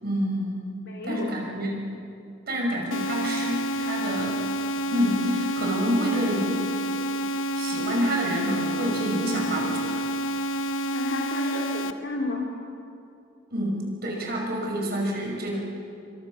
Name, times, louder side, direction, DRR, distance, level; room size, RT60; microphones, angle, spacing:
voice 1, 0.0-0.8 1.0-1.8 2.5-4.4 4.9-6.6 7.5-10.0 13.5-15.6, equal, 55° right, -1 dB, 5.8 m, -28 dB
voice 2, 0.8-1.6 10.9-12.4, left 2 dB, 65° left, -2 dB, 3.3 m, -32 dB
sound 1, 2.9-11.9, right 1 dB, 85° left, 1.0 m, -29 dB
29.0 x 25.5 x 6.4 m, 2.5 s
head